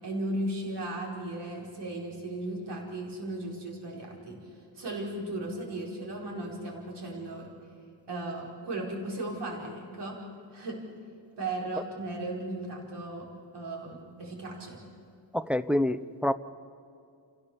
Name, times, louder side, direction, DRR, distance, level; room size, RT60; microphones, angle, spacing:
voice 1, 0.0-4.5 4.7-7.5 8.1-10.2 10.5-10.8 11.4-13.3 13.5-14.8, right 1 dB, 60° right, -2 dB, 5.0 m, -36 dB
voice 2, 15.3-16.3, left 1 dB, 5° right, 11 dB, 0.5 m, -27 dB
29.5 x 16.5 x 7.1 m, 2.5 s
wide cardioid pair, 155°, 46 cm